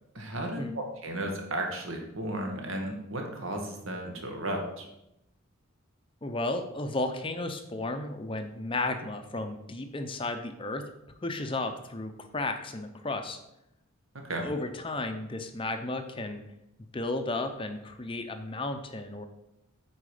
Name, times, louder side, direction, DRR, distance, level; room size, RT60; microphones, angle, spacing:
voice 1, 0.1-4.9 14.2-14.5, right 1 dB, 70° right, 2 dB, 1.6 m, -34 dB
voice 2, 6.2-10.8 11.2-13.4 14.4-16.4 16.9-19.3, left 2 dB, 25° left, 7 dB, 0.6 m, -33 dB
8.9 x 4.7 x 5.0 m, 0.85 s
head